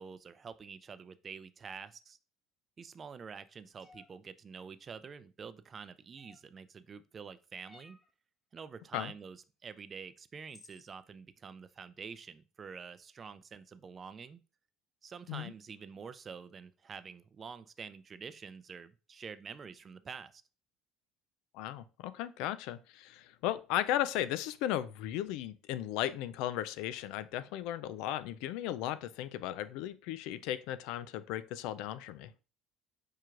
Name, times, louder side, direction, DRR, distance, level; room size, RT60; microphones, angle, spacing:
voice 1, 0.0-2.2 2.8-8.0 8.5-14.4 15.0-20.4, right 6 dB, 35° right, 14 dB, 0.4 m, -47 dB
sound 1, 3.8-4.1 6.2-6.6 7.6-8.1 9.8-9.9 10.5-10.9, left 3 dB, 20° left, 1.2 m, -58 dB
voice 2, 21.5-32.3, left 12 dB, 75° left, 15 dB, 0.4 m, -36 dB
4.6 x 4.5 x 2.5 m, 0.32 s
supercardioid pair, 80°, 0 cm